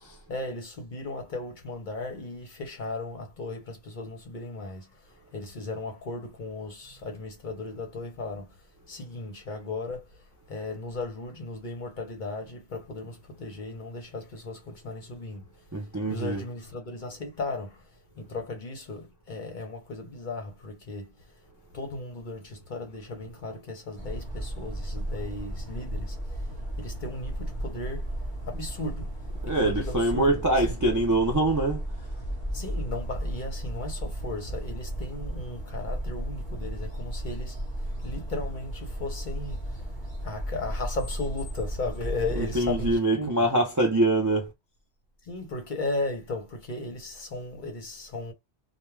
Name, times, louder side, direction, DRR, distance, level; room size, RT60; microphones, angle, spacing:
voice 1, 0.3-4.9 5.3-8.4 8.9-10.0 10.5-15.4 16.1-17.7 18.3-21.1 21.7-26.1 26.8-28.1 28.5-29.1 29.4-30.8 32.5-37.5 38.0-39.6 40.2-43.3 45.3-48.3, left 2 dB, 50° left, 0.8 m, -36 dB
voice 2, 15.7-16.4 29.5-31.8 42.4-44.5, right 1 dB, 30° right, 0.3 m, -24 dB
sound 1, 24.0-43.0, right 1 dB, 25° left, 1.1 m, -34 dB
2.3 x 2.3 x 3.1 m
omnidirectional pair, 1.2 m